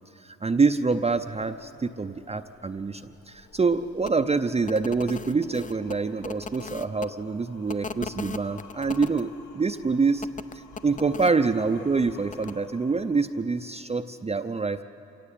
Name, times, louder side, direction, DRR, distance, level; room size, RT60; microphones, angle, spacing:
voice 1, 0.2-10.3 10.5-14.8, right 4 dB, 20° right, 7 dB, 0.6 m, -26 dB
sound 1, 0.8-13.8, left 5 dB, 75° left, 2.2 m, -53 dB
sound 2, 4.0-4.1 4.6-7.1 7.7-9.2 10.2-11.3 12.3-12.5, left 4 dB, 25° left, 0.6 m, -38 dB
26.0 x 17.0 x 8.6 m, 3.0 s
cardioid pair, 90°, 30 cm